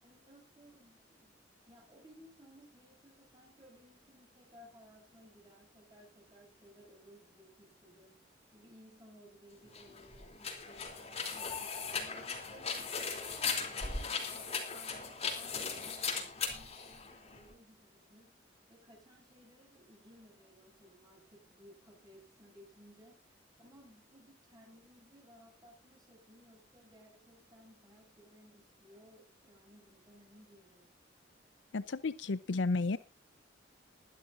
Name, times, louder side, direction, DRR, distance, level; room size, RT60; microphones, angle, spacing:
voice 1, 0.0-1.4 1.7-12.9 13.3-18.4 18.7-30.9, equal, 25° right, 0 dB, 7.4 m, -60 dB
sound 1, 9.7-17.5, left 5 dB, 35° left, 3.1 m, -38 dB
voice 2, 31.7-33.0, left 3 dB, 90° left, 16 dB, 0.6 m, -32 dB
21.5 x 11.0 x 2.6 m, 0.29 s
head